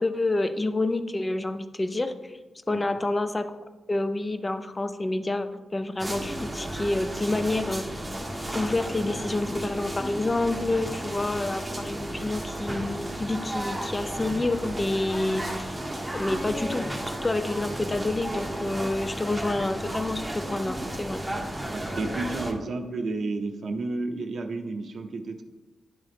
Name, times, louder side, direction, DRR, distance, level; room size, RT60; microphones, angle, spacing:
voice 1, 0.0-2.3 2.7-3.5 3.9-7.9 8.5-15.8 16.1-21.2, left 2 dB, 25° left, 10 dB, 0.5 m, -28 dB
sound 1, 6.0-22.5, right 1 dB, 5° right, 1.4 m, -33 dB
voice 2, 21.7-25.4, right 3 dB, 60° right, 4 dB, 0.6 m, -31 dB
10.0 x 3.7 x 3.5 m, 1.2 s
cardioid pair, 65°, 0 cm